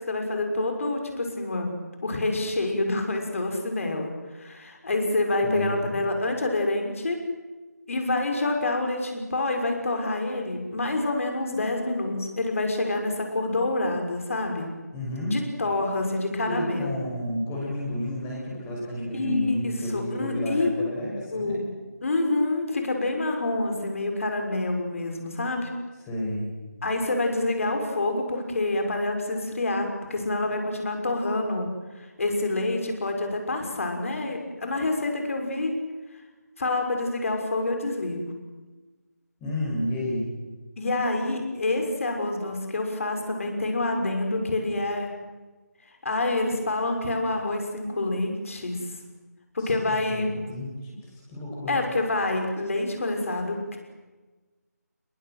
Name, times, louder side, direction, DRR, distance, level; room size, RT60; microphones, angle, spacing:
voice 1, 0.1-7.2 7.9-14.7 15.3-17.0 19.1-20.7 21.3-21.7 22.0-25.7 26.8-31.7 32.0-35.7 36.6-38.2 40.8-45.1 46.0-48.8 49.5-50.3 51.7-53.8, left 2 dB, 50° left, 4 dB, 6.3 m, -27 dB
voice 2, 5.4-6.0 14.9-15.4 16.5-21.6 26.1-26.5 39.4-40.3 49.6-51.8, equal, 10° left, -3 dB, 6.0 m, -31 dB
28.5 x 21.5 x 7.9 m, 1.3 s
figure-of-eight pair, 165°, 9 cm